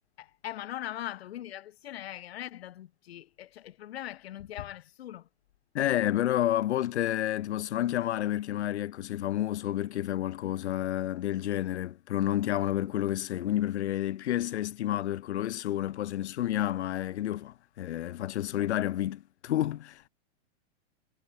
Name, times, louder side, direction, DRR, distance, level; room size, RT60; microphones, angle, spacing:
voice 1, 0.2-5.3, left 12 dB, 65° left, 3.7 m, -40 dB
voice 2, 5.7-20.1, left 13 dB, 80° left, 1.4 m, -30 dB
supercardioid pair, 180°, 33 cm